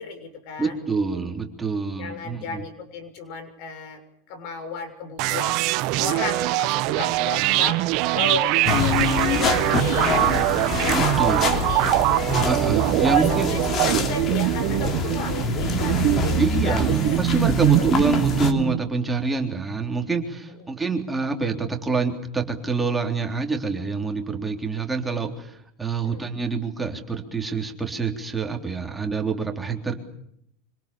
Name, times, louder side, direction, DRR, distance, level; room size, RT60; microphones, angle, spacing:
voice 1, 0.0-0.7 2.0-4.0 4.3-5.6 6.0-7.8 8.1-10.5 10.8-12.2 13.0-17.4 17.6-17.9 20.6-20.7 26.0-26.2, left 4 dB, 55° left, 8 dB, 6.6 m, -34 dB
voice 2, 0.6-2.6 10.9-11.5 12.4-13.5 16.4-29.9, right 4 dB, 10° right, 3 dB, 3.6 m, -26 dB
sound 1, 5.2-18.8, right 18 dB, 50° right, 1.3 m, -23 dB
sound 2, 8.7-18.5, left 4 dB, 30° left, 3.2 m, -26 dB
26.0 x 26.0 x 7.1 m, 0.74 s
supercardioid pair, 150°, 0 cm